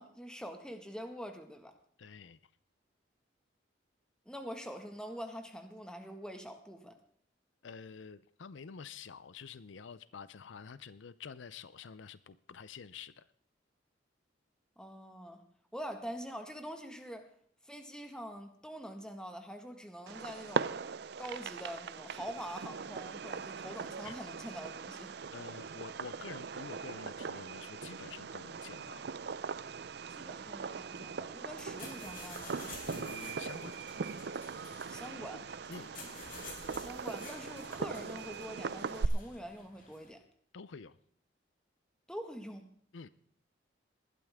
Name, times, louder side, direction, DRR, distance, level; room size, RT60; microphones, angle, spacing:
voice 1, 0.0-1.7 4.2-7.0 14.8-15.4 15.7-17.3 17.6-20.9 21.2-25.1 30.1-32.5 34.9-35.5 36.8-40.2 42.1-42.7, equal, 5° left, 5 dB, 1.7 m, -45 dB
voice 2, 2.0-2.4 7.6-13.3 24.0-24.1 25.3-29.0 32.9-33.8 35.7-35.9 40.5-41.0 42.9-43.1, left 5 dB, 90° left, 16 dB, 0.6 m, -48 dB
Fireworks, 20.1-39.1, right 5 dB, 60° right, 0.5 m, -40 dB
sound 1, 31.5-40.1, left 3 dB, 50° left, 4.3 m, -51 dB
19.5 x 12.0 x 3.6 m, 0.62 s
head